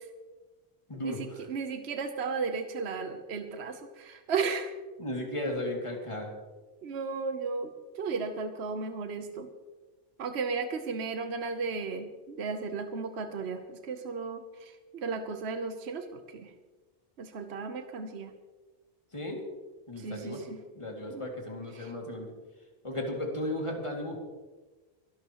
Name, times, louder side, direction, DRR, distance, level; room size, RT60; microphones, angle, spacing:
voice 1, 0.9-1.5 5.0-6.3 19.1-19.4 19.9-20.4 20.8-22.3 22.8-24.2, left 1 dB, 25° left, 0 dB, 2.5 m, -35 dB
voice 2, 1.5-4.7 6.8-7.7 8.0-9.5 10.2-14.4 14.9-16.0 16.3-16.5 17.2-18.3 20.0-20.6 21.1-21.3 21.8-21.9, right 4 dB, 70° right, 7 dB, 1.2 m, -34 dB
24.0 x 12.0 x 3.0 m, 1.3 s
omnidirectional pair, 1.2 m